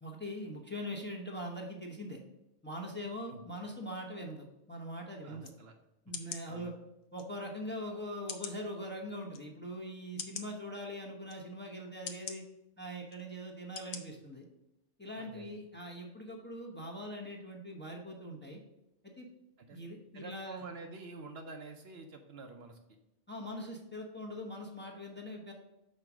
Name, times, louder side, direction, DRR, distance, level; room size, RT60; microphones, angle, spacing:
voice 1, 0.0-2.2 2.6-5.5 6.1-6.7 7.1-12.4 12.8-14.5 15.0-18.6 19.0-19.3 19.7-20.6 23.3-25.5, equal, 10° left, 0 dB, 0.9 m, -42 dB
voice 2, 5.2-5.7 6.5-6.7 15.2-15.5 19.6-19.8 20.1-22.8, right 3 dB, 65° right, 5 dB, 0.9 m, -48 dB
sound 1, 5.4-5.6 6.1-6.4 7.2-7.3 8.3-8.6 9.3-9.4 10.2-10.5 11.3-11.4 12.1-12.4 13.1-13.2 13.8-14.0 14.4-14.5, left 7 dB, 80° left, 1.0 m, -42 dB
5.5 x 4.0 x 6.0 m, 0.88 s
omnidirectional pair, 1.2 m